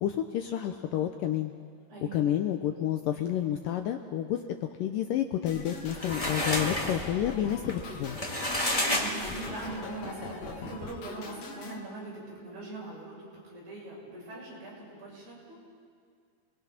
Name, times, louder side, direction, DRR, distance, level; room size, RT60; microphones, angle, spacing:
voice 1, 0.0-1.5 2.1-4.4 4.8-8.2, left 11 dB, 75° left, 5 dB, 2.1 m, -30 dB
voice 2, 1.9-2.2 8.9-13.2 13.4-15.6, right 2 dB, 75° right, -5 dB, 9.6 m, -41 dB
sound 1, 5.5-11.8, left 4 dB, 50° left, 2.6 m, -42 dB
sound 2, 5.6-9.8, left 1 dB, 30° left, 0.6 m, -31 dB
29.5 x 21.5 x 5.9 m, 2.1 s
omnidirectional pair, 4.7 m